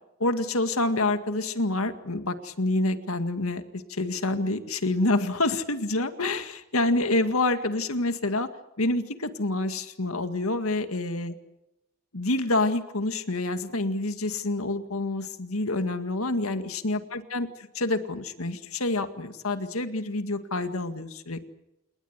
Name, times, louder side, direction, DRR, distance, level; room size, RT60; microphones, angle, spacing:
voice 1, 0.2-8.5 8.8-11.3 12.1-17.5 17.7-21.4, left 2 dB, 85° left, 9 dB, 2.0 m, -27 dB
29.0 x 19.0 x 8.2 m, 0.88 s
head